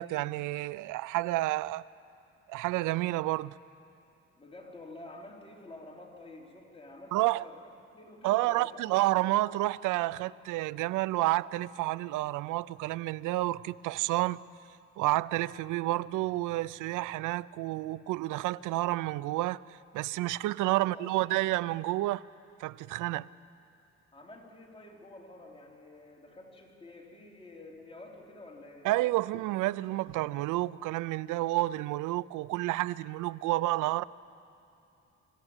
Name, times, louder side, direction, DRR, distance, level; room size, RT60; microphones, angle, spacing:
voice 1, 0.0-1.8 2.5-3.5 7.1-7.4 8.2-14.4 15.0-19.6 19.9-22.2 22.6-23.3 28.8-34.0, right 17 dB, 90° right, 0.5 m, -30 dB
voice 2, 4.4-8.8 9.1-9.3 20.7-21.3 24.1-28.9, left 2 dB, 20° left, 4.0 m, -49 dB
25.5 x 14.5 x 8.9 m
cardioid pair, 90°, 30 cm